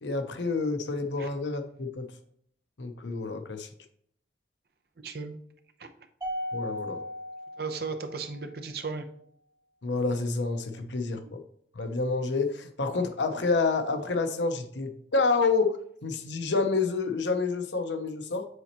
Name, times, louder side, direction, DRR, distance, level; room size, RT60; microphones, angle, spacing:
voice 1, 0.0-2.1 2.8-3.7 6.5-7.0 9.8-11.4 11.8-15.8 16.0-18.5, left 4 dB, 90° left, 7 dB, 0.8 m, -28 dB
voice 2, 5.0-5.3 5.8-5.9 7.6-9.1, right 4 dB, 60° right, 7 dB, 0.7 m, -35 dB
Mallet percussion, 6.2-8.6, equal, 20° right, 2.4 m, -37 dB
8.0 x 4.2 x 2.9 m, 0.66 s
head